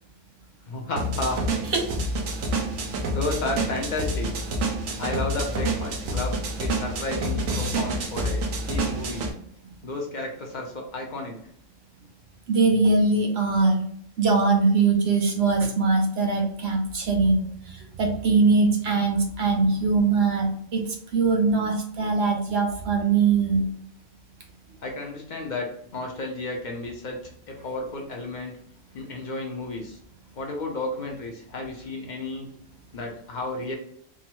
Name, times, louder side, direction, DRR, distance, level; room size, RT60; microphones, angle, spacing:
voice 1, 0.7-1.4 3.1-4.3 5.0-9.3 9.8-11.4 23.0-23.1 23.5-23.6 24.8-27.2 27.5-28.5 28.9-30.0 30.3-32.5 32.9-33.8, left 2 dB, 55° left, 1 dB, 0.5 m, -32 dB
sound 1, 1.0-9.3, right 1 dB, 80° right, 1.1 m, -28 dB
voice 2, 12.5-13.8 14.2-23.6, right 4 dB, 60° right, 2 dB, 0.8 m, -22 dB
3.7 x 2.0 x 2.9 m, 0.69 s
omnidirectional pair, 1.3 m